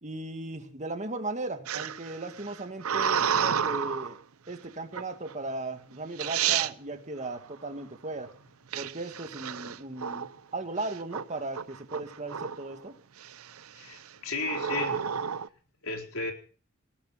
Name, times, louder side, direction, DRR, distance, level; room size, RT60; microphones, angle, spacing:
voice 1, 0.0-4.2 4.5-8.3 8.7-12.9, right 2 dB, 35° right, 6 dB, 2.2 m, -37 dB
sound 1, 1.7-4.2 4.9-5.3 5.9-6.0 6.2-6.7 8.7-10.4 10.8-11.2 11.5-12.7 13.2-13.6 14.4-15.5, right 8 dB, 90° right, 0.7 m, -30 dB
voice 2, 13.8-15.1 15.8-16.3, left 3 dB, 75° left, 3 dB, 4.1 m, -34 dB
20.0 x 11.5 x 5.9 m, 0.40 s
head